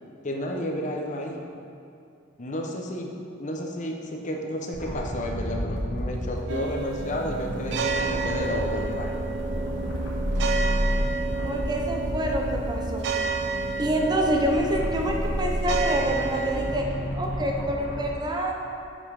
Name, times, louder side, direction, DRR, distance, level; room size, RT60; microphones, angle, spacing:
voice 1, 0.2-1.4 2.4-3.1 3.4-9.2, left 1 dB, 40° left, 1 dB, 0.7 m, -32 dB
sound 1, 4.7-18.0, equal, 65° left, 1.4 m, -31 dB
sound 2, 6.5-16.8, right 4 dB, 60° right, 0.4 m, -31 dB
voice 2, 11.4-13.0 13.8-16.9 17.2-18.6, right 1 dB, 20° right, 0 dB, 0.7 m, -27 dB
7.4 x 5.4 x 4.7 m, 2.4 s
head